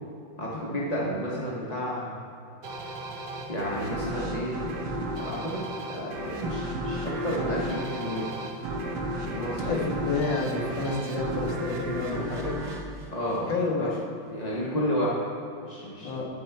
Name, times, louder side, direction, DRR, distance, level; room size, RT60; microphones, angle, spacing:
voice 1, 0.4-2.2 3.5-4.6 5.1-5.6 5.9-8.3 9.3-9.8 13.1-13.5 13.8-13.9 14.3-15.2 15.6-16.2, equal, 40° left, -6 dB, 0.5 m, -31 dB
sound 1, 2.6-13.9, right 1 dB, 60° right, 1.4 m, -34 dB
voice 2, 9.6-12.6 13.3-13.9 16.0-16.3, left 3 dB, 60° left, -1 dB, 1.8 m, -29 dB
12.5 x 4.5 x 4.5 m, 2.7 s
omnidirectional pair, 2.4 m